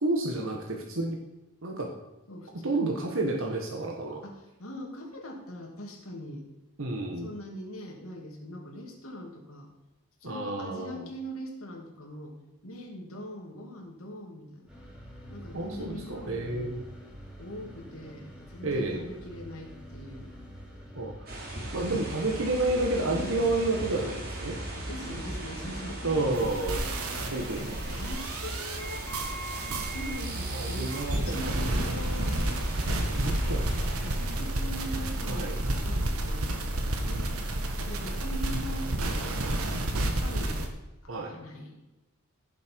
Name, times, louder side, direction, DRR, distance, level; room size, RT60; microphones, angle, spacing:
voice 1, 0.0-1.2 1.6-1.9 2.6-4.2 6.8-7.3 10.2-11.1 15.5-16.8 18.6-19.0 20.9-21.3 21.7-24.6 26.0-26.8 27.3-28.0 30.5-31.7 33.1-33.7 35.2-35.5 41.1-41.3, right 2 dB, 65° right, 1 dB, 1.4 m, -30 dB
voice 2, 2.3-3.0 4.2-6.5 7.2-9.7 10.2-12.4 12.6-14.7 15.3-16.8 17.4-20.3 22.2-22.3 24.7-27.3 27.9-29.1 29.9-32.6 33.7-36.5 37.0-37.4 37.8-38.9 39.9-40.7 41.0-41.8, equal, 70° left, 1 dB, 2.6 m, -42 dB
sound 1, 14.7-27.4, equal, 5° right, 2.8 m, -47 dB
sound 2, 21.3-34.7, right 1 dB, 45° right, 2.9 m, -38 dB
sound 3, 26.3-40.7, right 1 dB, 80° right, 1.5 m, -31 dB
15.5 x 7.4 x 4.6 m, 1.0 s
head